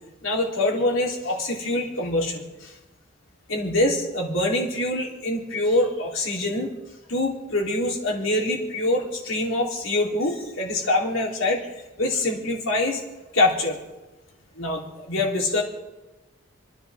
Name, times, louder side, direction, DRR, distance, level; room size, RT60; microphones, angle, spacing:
voice 1, 0.2-2.7 3.5-6.7 7.1-11.6 12.0-13.0 13.3-13.8 14.6-15.6, left 1 dB, 85° left, -2 dB, 3.7 m, -24 dB
30.0 x 10.0 x 3.7 m, 1.1 s
head